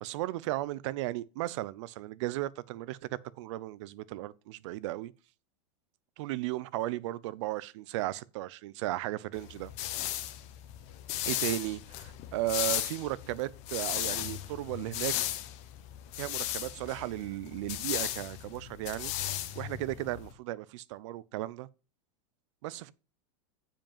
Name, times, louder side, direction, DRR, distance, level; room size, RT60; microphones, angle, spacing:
voice 1, 0.0-3.0 3.4-5.1 6.2-9.7 11.2-15.1 16.2-19.1 19.5-21.7 22.6-22.9, right 16 dB, 60° right, 0.6 m, -35 dB
sound 1, 9.4-20.3, left 13 dB, 40° left, 1.1 m, -36 dB
7.2 x 5.2 x 7.2 m
supercardioid pair, 150°, 18 cm